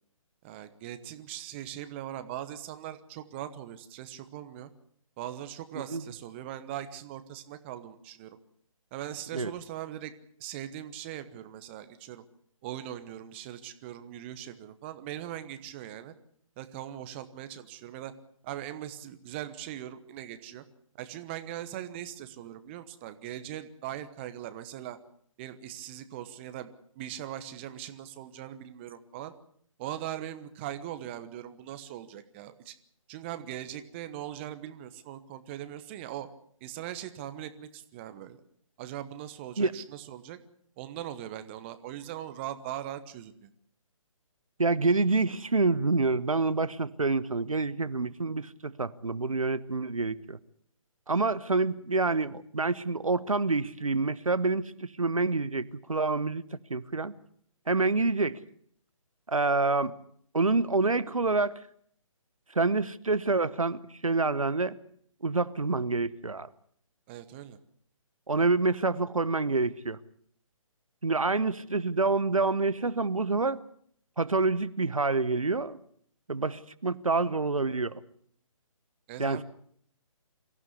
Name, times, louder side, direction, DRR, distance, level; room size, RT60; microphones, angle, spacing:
voice 1, 0.4-4.7 5.2-8.4 8.9-10.1 10.4-12.2 12.6-16.1 16.6-18.1 18.4-20.6 21.0-25.0 25.4-26.7 26.9-29.3 29.8-32.7 33.1-36.3 36.6-38.4 38.8-40.4 40.8-43.5 67.1-67.6 79.1-79.4, right 12 dB, 20° right, 1.1 m, -40 dB
voice 2, 44.6-50.4 51.1-56.4 56.7-57.1 57.7-58.4 59.3-59.9 60.3-61.5 62.5-64.8 65.2-66.5 68.3-70.0 71.0-73.6 74.2-75.8 76.3-78.0 79.2-79.4, right 3 dB, 75° right, 1.1 m, -27 dB
24.0 x 15.0 x 8.2 m
figure-of-eight pair, 140°, 18 cm